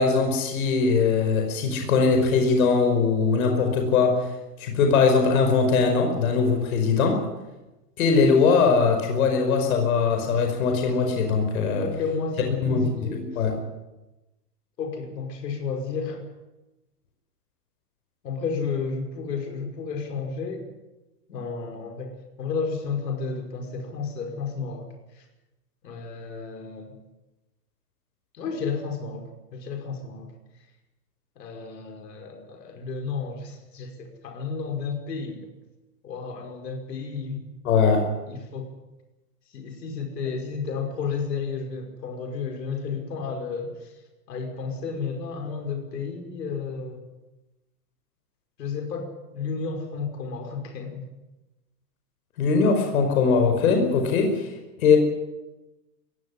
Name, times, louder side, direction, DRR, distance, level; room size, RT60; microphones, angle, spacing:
voice 1, 0.0-4.2 4.6-7.2 8.0-11.9 12.6-12.8 13.1-13.6 37.6-38.0 52.4-54.5 54.8-55.0, left 5 dB, 60° left, 4 dB, 5.2 m, -21 dB
voice 2, 11.8-13.4 14.8-16.3 18.2-20.7 21.3-25.3 25.8-27.0 28.3-30.3 31.4-35.5 36.0-37.5 38.3-38.7 39.5-43.9 44.3-47.1 48.6-51.1, left 5 dB, 80° left, 3 dB, 5.7 m, -32 dB
20.5 x 16.5 x 10.0 m, 1.0 s
supercardioid pair, 170°, 49 cm